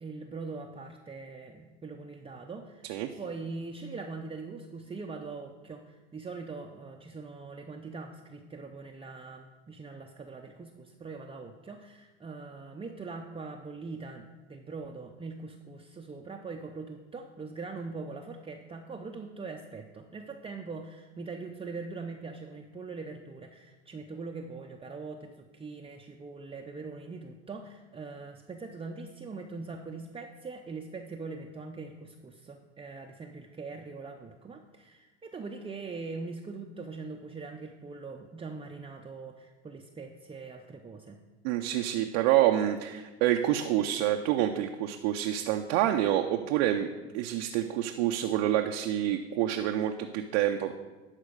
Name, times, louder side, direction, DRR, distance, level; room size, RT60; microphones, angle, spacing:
voice 1, 0.0-41.2, right 4 dB, 15° right, 2 dB, 0.7 m, -42 dB
voice 2, 41.4-50.7, right 12 dB, 65° right, 3 dB, 0.7 m, -27 dB
11.5 x 4.4 x 6.6 m, 1.2 s
hypercardioid pair, 90°, 34 cm